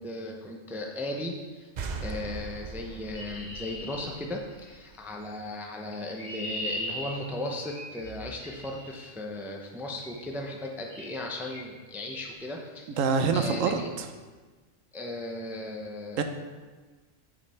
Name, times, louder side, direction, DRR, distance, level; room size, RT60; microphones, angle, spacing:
voice 1, 0.0-1.7 2.0-13.9 14.9-16.2, left 1 dB, ahead, 0 dB, 0.4 m, -36 dB
sound 1, 1.8-5.2, right 4 dB, 55° right, 0.4 m, -40 dB
Chirp tweet, 3.1-4.8 5.8-8.9 10.0-10.3 10.9-11.2 11.4-11.6 12.0-12.3, left 1 dB, 55° left, 2.8 m, -39 dB
voice 2, 13.0-14.1 16.2-16.3, right 5 dB, 80° right, 7 dB, 1.1 m, -25 dB
7.2 x 5.2 x 4.3 m, 1.4 s
omnidirectional pair, 1.3 m